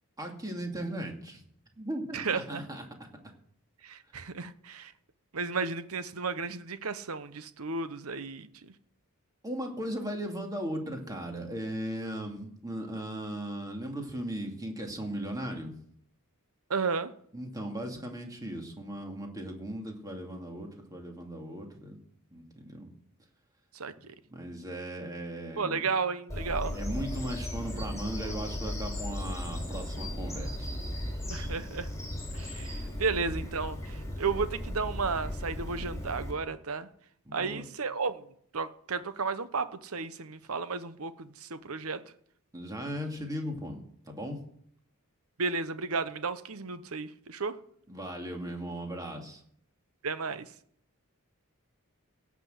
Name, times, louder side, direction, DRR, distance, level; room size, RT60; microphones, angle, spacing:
voice 1, 0.2-1.4 1.8-2.8 9.4-15.7 17.3-22.0 22.3-22.9 24.3-25.9 26.7-30.7 37.3-37.6 42.5-44.4 47.9-49.4, right 1 dB, 15° right, 2.4 m, -37 dB
voice 2, 2.1-2.6 3.8-4.9 5.3-8.7 16.7-17.1 23.7-24.1 25.6-26.8 31.3-31.9 32.3-36.9 37.3-38.3 38.5-42.0 45.4-47.6 50.0-50.5, right 4 dB, 70° right, 0.9 m, -33 dB
Bird vocalization bird call bird song, 26.3-36.3, left 1 dB, 15° left, 4.1 m, -36 dB
17.0 x 6.1 x 7.7 m
head